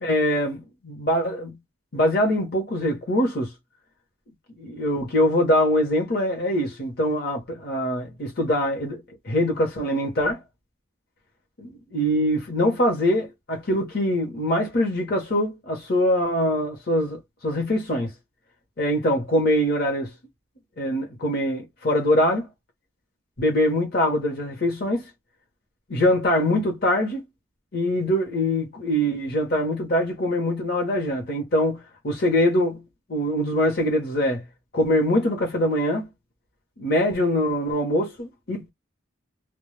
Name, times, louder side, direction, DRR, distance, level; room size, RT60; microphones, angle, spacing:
voice 1, 0.0-1.6 1.9-3.5 4.6-10.4 11.6-18.1 18.8-20.1 20.8-22.5 23.4-25.0 25.9-27.2 27.7-32.8 33.1-34.4 34.7-36.1 36.8-38.7, equal, 50° left, 0.8 m, -23 dB
2.2 x 2.1 x 3.1 m
head